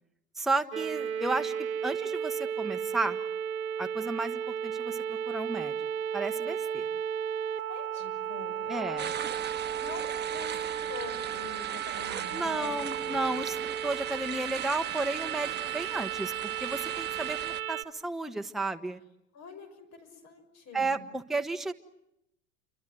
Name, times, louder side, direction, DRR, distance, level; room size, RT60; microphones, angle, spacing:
voice 1, 0.4-1.5 1.8-3.2 3.8-5.0 5.3-5.7 6.1-6.9 8.7-9.1 12.3-19.0 20.7-21.7, right 3 dB, ahead, 7 dB, 1.0 m, -33 dB
sound 1, 0.7-17.8, right 8 dB, 85° right, 1.0 m, -34 dB
voice 2, 7.7-9.2 9.8-12.8 13.0-13.2 19.3-21.0, left 4 dB, 40° left, 9 dB, 6.3 m, -45 dB
sound 2, 9.0-17.6, right 9 dB, 25° right, 1.2 m, -39 dB
28.5 x 24.5 x 7.7 m, 0.82 s
hypercardioid pair, 90°, 41 cm